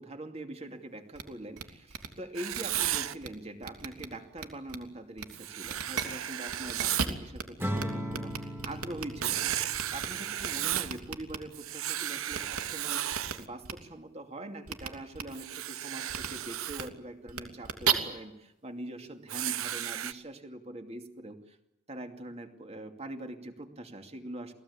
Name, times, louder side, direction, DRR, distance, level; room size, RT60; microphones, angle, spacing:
voice 1, 0.0-13.0 13.4-21.6 21.9-24.5, right 1 dB, 30° right, 5 dB, 2.6 m, -43 dB
sound 1, 1.1-1.2 1.6-1.7 1.9-2.1 2.5-3.3 3.6-4.1 4.4-4.8 5.2-5.3 5.6-6.0 6.5-7.4 7.8-7.9 8.1-10.1 10.4-11.4 12.3-12.6 13.1-13.3 13.6-13.7 14.7-14.9 15.1-15.2 16.1-16.3 16.7-16.8 17.3-17.9, right 7 dB, 90° right, 3.1 m, -33 dB
Writing, 2.3-3.1 5.3-7.1 9.2-11.0 11.5-13.4 15.3-16.9 19.3-20.1, right 12 dB, 70° right, 1.0 m, -34 dB
Acoustic guitar / Strum, 7.6-10.9, equal, 10° right, 3.0 m, -38 dB
28.0 x 19.5 x 8.6 m, 0.87 s
head